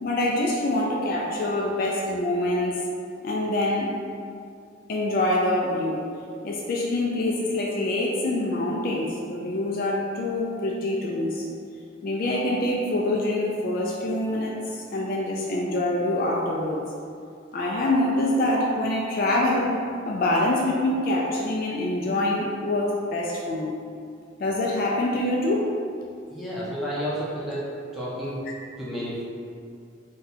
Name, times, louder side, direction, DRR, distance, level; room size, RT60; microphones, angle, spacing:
voice 1, 0.0-2.7 3.2-3.9 4.9-6.0 6.4-11.5 12.0-16.8 17.5-19.7 20.0-23.8 24.4-25.7, left 1 dB, 50° left, -2 dB, 0.3 m, -25 dB
voice 2, 26.3-27.6 27.9-28.4 28.8-29.2, equal, ahead, -8 dB, 0.6 m, -31 dB
2.7 x 2.3 x 4.0 m, 2.3 s
head